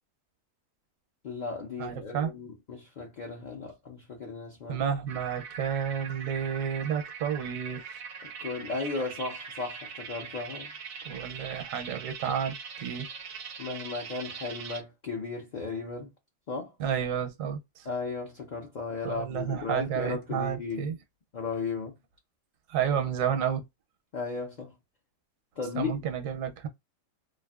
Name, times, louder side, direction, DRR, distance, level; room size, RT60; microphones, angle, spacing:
voice 1, 1.2-4.8 8.2-10.7 13.6-16.1 16.5-16.8 17.8-21.0 21.3-22.0 24.1-24.8 25.6-25.9, left 4 dB, 55° left, 0.5 m, -35 dB
voice 2, 1.8-2.3 4.7-8.0 11.1-13.1 16.8-17.9 19.0-21.0 22.7-23.6 25.7-26.7, right 8 dB, 80° right, 1.0 m, -31 dB
sound 1, 5.1-14.8, right 6 dB, 60° right, 0.6 m, -42 dB
2.4 x 2.4 x 2.3 m
omnidirectional pair, 1.4 m